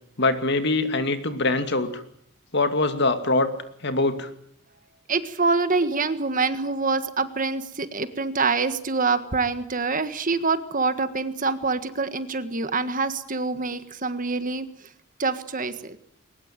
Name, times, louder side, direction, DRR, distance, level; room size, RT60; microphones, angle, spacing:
voice 1, 0.2-2.0 2.5-3.5 3.8-4.3, left 2 dB, 55° left, 9 dB, 2.4 m, -23 dB
voice 2, 5.1-14.7 15.2-16.0, right 4 dB, 40° right, 11 dB, 1.6 m, -25 dB
22.5 x 20.0 x 9.1 m, 0.69 s
head